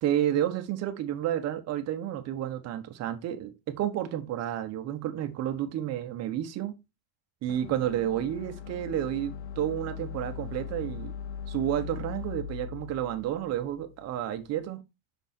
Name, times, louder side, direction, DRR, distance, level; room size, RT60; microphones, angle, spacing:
voice 1, 0.0-6.8 7.4-11.1 11.5-14.8, right 11 dB, 40° right, 1.3 m, -31 dB
sound 1, 7.5-14.6, left 7 dB, 35° left, 0.7 m, -40 dB
6.2 x 6.0 x 4.3 m
cardioid pair, 165°, 39 cm